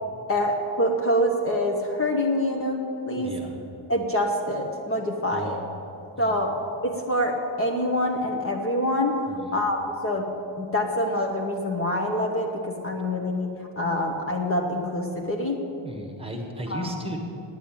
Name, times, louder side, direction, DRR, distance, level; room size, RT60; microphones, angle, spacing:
voice 1, 0.3-2.8 3.1-3.3 3.9-5.6 6.2-6.5 6.8-9.1 9.5-10.3 10.6-13.5 13.8-15.6 16.7-16.9, left 1 dB, 30° left, 1 dB, 1.0 m, -25 dB
voice 2, 3.2-3.5 5.3-5.6 6.2-6.4 9.3-9.6 15.8-17.2, right 1 dB, 10° right, 2 dB, 1.3 m, -35 dB
9.0 x 8.8 x 8.8 m, 2.9 s
cardioid pair, 150°, 47 cm